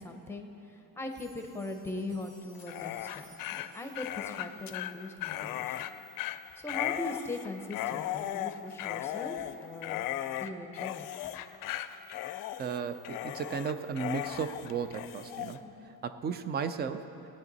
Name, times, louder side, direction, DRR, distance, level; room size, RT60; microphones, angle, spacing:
voice 1, 0.0-5.9 6.6-10.1 10.4-11.1 15.6-16.0, left 2 dB, 5° left, 4 dB, 0.7 m, -40 dB
sound 1, 1.0-5.7 6.2-6.3 6.8-6.9 7.4-7.5, right 2 dB, 85° right, 2.9 m, -60 dB
Dog, 2.5-15.6, left 12 dB, 60° left, 0.5 m, -37 dB
voice 2, 12.6-15.6 16.0-17.0, right 6 dB, 25° right, 11 dB, 0.4 m, -34 dB
19.0 x 9.1 x 4.0 m, 3.0 s
cardioid pair, 155°, 38 cm